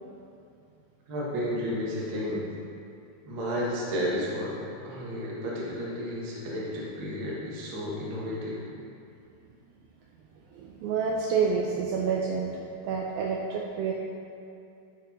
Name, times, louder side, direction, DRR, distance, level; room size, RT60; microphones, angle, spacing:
voice 1, 1.1-2.4 3.2-4.6 4.8-8.6, equal, 55° right, -6 dB, 1.3 m, -32 dB
voice 2, 10.5-12.6 12.8-13.9, right 5 dB, 90° right, -2 dB, 2.1 m, -28 dB
13.5 x 5.0 x 4.4 m, 2.5 s
omnidirectional pair, 4.8 m